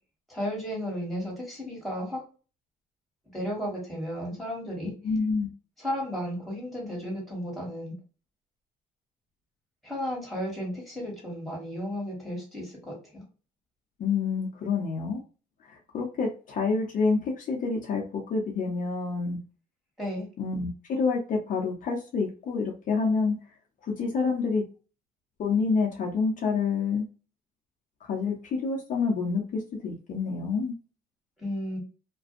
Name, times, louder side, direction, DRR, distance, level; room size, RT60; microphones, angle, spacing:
voice 1, 0.3-2.2 3.3-4.9 5.8-7.9 9.8-13.2 20.0-20.3 31.4-31.8, equal, ahead, -2 dB, 1.5 m, -34 dB
voice 2, 5.0-5.5 14.0-15.2 15.6-19.4 20.4-23.4 23.9-24.6 25.4-27.1 28.0-28.3 28.6-30.7, left 4 dB, 50° left, 0 dB, 0.7 m, -28 dB
2.5 x 2.3 x 2.5 m, 0.35 s
cardioid pair, 110°, 17 cm